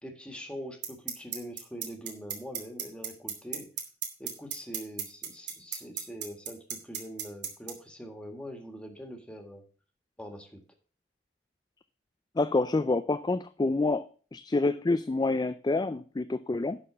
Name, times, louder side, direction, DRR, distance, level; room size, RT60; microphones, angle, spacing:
voice 1, 0.0-3.7 4.2-9.6 10.2-10.6, equal, 5° left, 4 dB, 1.7 m, -43 dB
sound 1, 0.8-7.7, right 9 dB, 70° right, 2.0 m, -33 dB
voice 2, 12.4-16.8, left 3 dB, 25° left, 11 dB, 0.4 m, -28 dB
11.0 x 4.2 x 6.8 m, 0.40 s
head